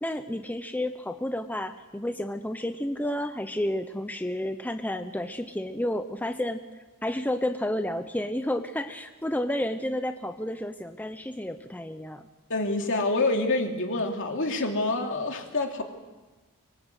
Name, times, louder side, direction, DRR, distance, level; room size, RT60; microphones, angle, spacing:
voice 1, 0.0-6.6 7.0-12.3, left 1 dB, 10° left, 7 dB, 0.8 m, -31 dB
voice 2, 12.5-15.8, left 2 dB, 60° left, 3 dB, 3.0 m, -27 dB
24.5 x 23.0 x 8.2 m, 1.2 s
head